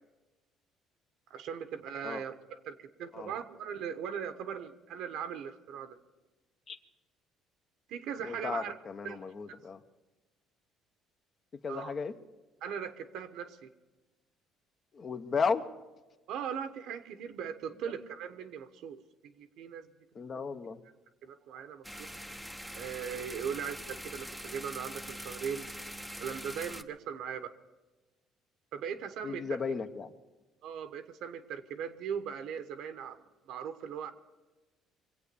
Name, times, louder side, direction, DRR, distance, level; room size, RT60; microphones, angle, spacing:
voice 1, 1.3-6.0 7.9-8.7 9.0-9.2 11.7-11.9 12.6-13.7 16.3-19.9 21.2-22.1 22.7-25.7 26.2-27.5 28.7-29.4 30.6-33.2 33.5-34.1, right 7 dB, 70° right, 10 dB, 1.2 m, -39 dB
voice 2, 8.2-9.8 11.6-12.1 14.9-15.6 17.8-17.9 20.1-20.8 29.2-30.1, left 5 dB, 40° left, 9 dB, 0.9 m, -34 dB
sound 1, 21.8-26.8, equal, ahead, 0.7 m, -43 dB
24.0 x 8.4 x 6.9 m, 1.2 s
cardioid pair, 110°, 0 cm